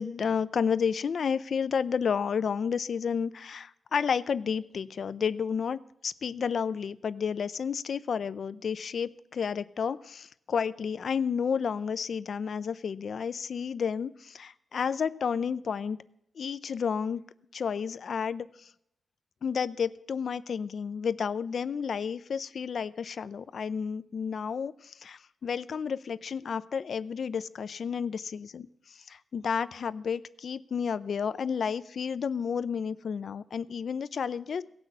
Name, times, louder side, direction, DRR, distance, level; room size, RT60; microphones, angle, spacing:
voice 1, 0.0-16.0 16.4-17.2 17.5-18.7 19.4-28.7 29.1-34.6, left 6 dB, 55° left, 15 dB, 0.5 m, -31 dB
17.5 x 6.2 x 8.0 m, 0.77 s
wide cardioid pair, 175°, 0 cm